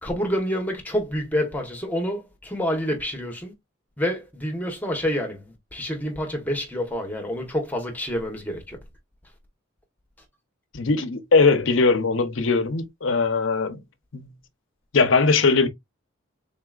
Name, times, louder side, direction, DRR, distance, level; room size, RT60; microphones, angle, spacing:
voice 1, 0.0-3.5 4.0-5.5 5.7-8.8, equal, 10° left, 1.0 m, -28 dB
voice 2, 10.7-13.8 14.1-14.3 14.9-15.7, left 4 dB, 65° left, 0.7 m, -20 dB
3.9 x 3.8 x 2.4 m
head